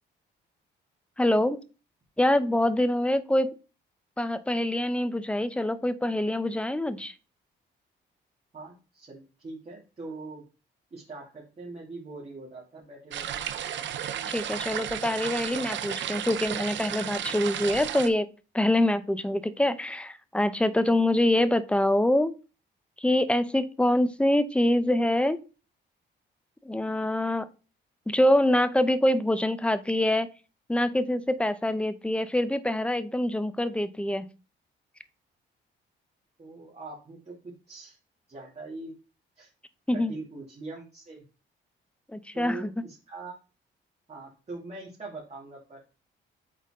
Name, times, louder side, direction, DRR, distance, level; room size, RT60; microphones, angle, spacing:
voice 1, 1.2-1.6 2.2-3.5 4.2-7.1 14.3-18.3 18.5-22.3 23.0-25.4 26.6-27.5 28.1-30.3 30.7-34.3 39.9-40.1 42.1-42.7, left 1 dB, 5° left, 14 dB, 0.7 m, -25 dB
voice 2, 8.5-10.4 10.9-13.4 36.4-38.0 38.3-38.9 39.4-39.5 39.9-41.2 42.3-43.4 44.1-45.8, right 3 dB, 35° right, -4 dB, 2.6 m, -42 dB
sound 1, 13.1-18.1, right 10 dB, 65° right, 0.8 m, -33 dB
8.0 x 4.1 x 3.7 m, 0.33 s
cardioid pair, 90°, 20 cm